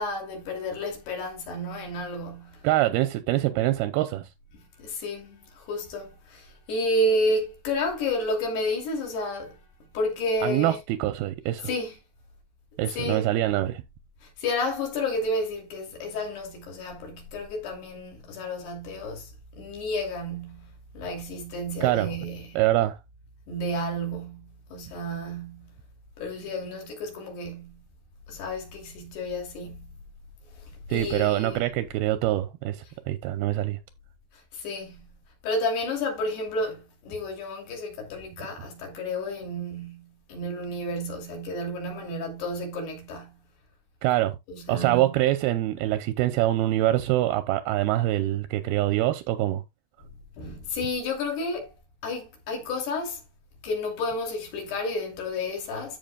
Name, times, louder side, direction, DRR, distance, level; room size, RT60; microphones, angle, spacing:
voice 1, 0.0-2.7 4.5-10.8 11.6-12.0 12.9-13.3 14.2-22.6 23.5-25.8 26.2-27.8 28.3-29.9 30.5-31.6 32.9-33.0 34.3-35.1 35.4-43.4 44.5-45.2 50.0-50.1 50.4-51.8 52.0-53.2 53.6-56.0, left 1 dB, 65° left, 4.8 m, -31 dB
voice 2, 2.6-4.2 10.4-11.7 12.8-13.8 21.8-22.1 22.6-23.0 30.9-33.8 44.0-44.4 44.7-49.6, right 15 dB, 80° right, 2.3 m, -24 dB
14.0 x 5.6 x 2.3 m
omnidirectional pair, 5.0 m